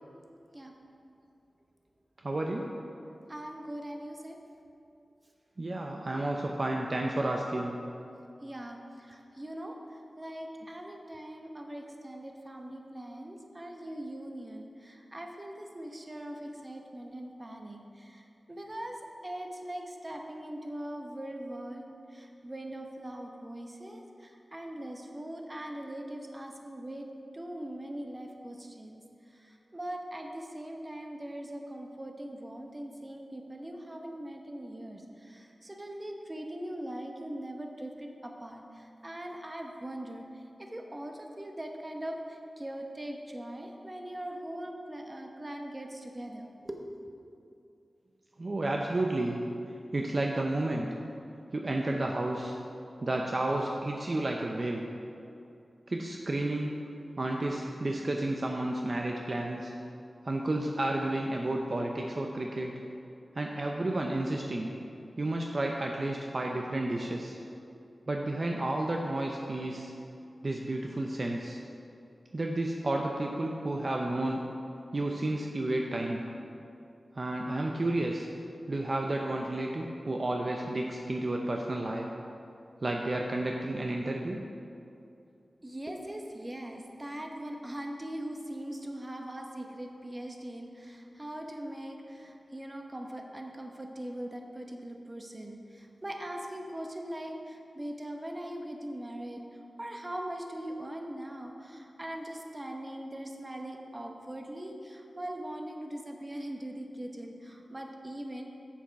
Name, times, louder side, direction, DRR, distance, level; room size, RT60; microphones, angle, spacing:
voice 1, 2.2-2.7 5.6-7.7 48.4-49.4 49.9-50.9 51.5-52.6 53.0-54.9 55.9-56.8 57.2-59.7 60.2-62.7 63.3-64.7 65.2-67.4 68.1-69.9 70.4-71.6 72.3-74.4 74.9-76.2 77.1-78.3 78.7-82.1 82.8-84.4, right 1 dB, 50° right, 1 dB, 0.6 m, -31 dB
voice 2, 3.3-4.4 8.4-21.8 22.1-27.1 27.3-29.0 29.3-46.9 85.6-99.4 99.8-108.4, right 1 dB, 25° right, 2 dB, 0.9 m, -41 dB
7.2 x 7.2 x 4.7 m, 2.6 s
wide cardioid pair, 65°, 0 cm